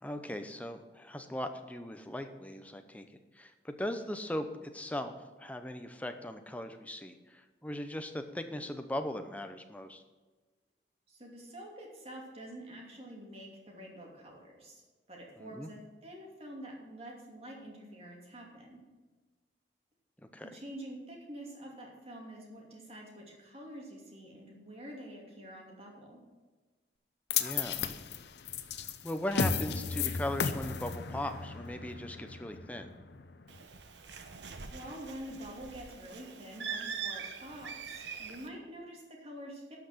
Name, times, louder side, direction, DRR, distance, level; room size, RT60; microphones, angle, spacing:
voice 1, 0.0-3.0 3.3-10.0 15.4-15.7 20.3-20.5 27.4-27.9 29.0-32.9, left 1 dB, 10° left, 7 dB, 0.7 m, -39 dB
voice 2, 11.1-14.8 15.1-18.8 20.5-26.2 34.7-39.8, equal, 35° right, -1 dB, 2.7 m, -47 dB
sound 1, 27.3-33.6, left 6 dB, 70° left, 0.7 m, -35 dB
Bird, 33.5-38.5, right 6 dB, 80° right, 0.9 m, -43 dB
12.0 x 5.8 x 6.7 m, 1.3 s
head